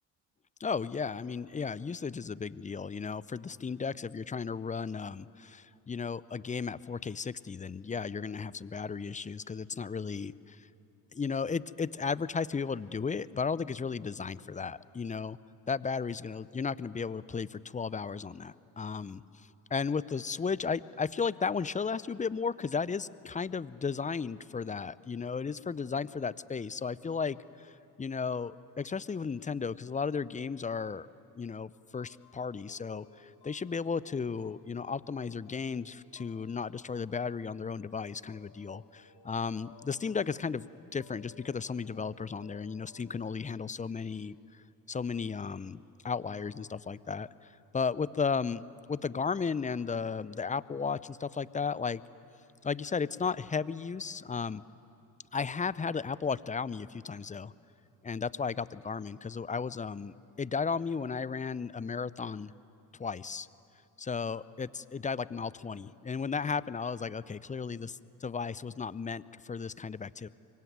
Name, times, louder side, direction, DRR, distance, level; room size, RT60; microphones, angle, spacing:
voice 1, 0.6-10.7 11.1-15.4 15.7-19.2 19.7-31.1 31.4-48.6 48.9-52.0 52.6-54.6 55.3-57.5 58.0-62.5 63.0-63.5 64.0-70.3, left 5 dB, 15° left, 19 dB, 0.6 m, -34 dB
sound 1, 32.0-44.5, left 5 dB, 60° left, 6.2 m, -60 dB
24.0 x 24.0 x 9.4 m, 2.7 s
hypercardioid pair, 55°, 48 cm